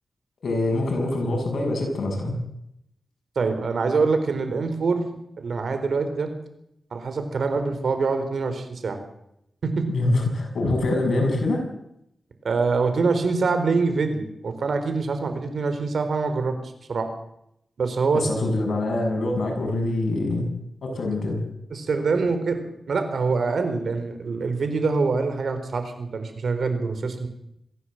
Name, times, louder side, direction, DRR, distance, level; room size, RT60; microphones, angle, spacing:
voice 1, 0.4-2.4 9.9-11.6 18.1-20.5 20.8-21.4, left 2 dB, 75° left, 2 dB, 7.7 m, -24 dB
voice 2, 3.4-5.0 5.4-6.3 6.9-9.0 9.6-9.8 12.4-16.5 16.9-17.1 17.8-18.3 21.7-22.6 22.9-27.3, right 4 dB, 75° right, 8 dB, 4.2 m, -24 dB
22.5 x 16.5 x 7.9 m, 0.79 s
wide cardioid pair, 80°, 0 cm